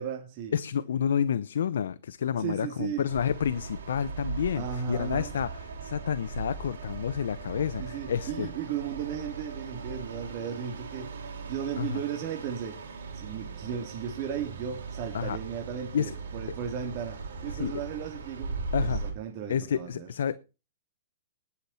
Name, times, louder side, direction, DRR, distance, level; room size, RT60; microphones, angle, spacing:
voice 1, 0.0-0.6 2.4-3.1 4.6-5.3 7.8-11.1 11.5-12.8 13.1-20.1, right 8 dB, 40° right, 2.6 m, -35 dB
voice 2, 0.5-8.5 11.8-12.0 15.1-15.4 15.9-16.1 16.5-16.6 17.5-17.8 18.7-19.0 19.5-20.4, left 8 dB, 80° left, 0.7 m, -30 dB
sound 1, 3.1-19.1, right 4 dB, 85° right, 5.3 m, -38 dB
19.0 x 7.2 x 4.3 m
hypercardioid pair, 150°, 0 cm